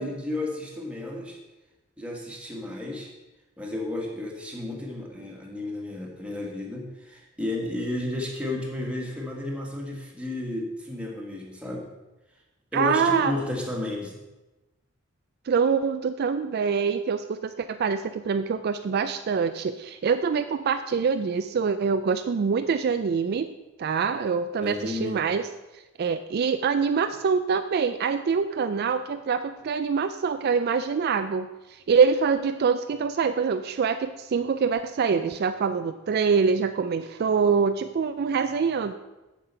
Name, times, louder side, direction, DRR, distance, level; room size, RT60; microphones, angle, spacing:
voice 1, 0.0-1.4 2.0-3.1 3.6-11.9 12.7-14.2 24.6-25.2, left 2 dB, 5° right, -2 dB, 1.7 m, -32 dB
voice 2, 12.7-13.3 15.5-23.5 23.8-25.5 25.7-38.9, right 5 dB, 50° right, 9 dB, 0.3 m, -25 dB
7.5 x 7.4 x 5.5 m, 1.1 s
head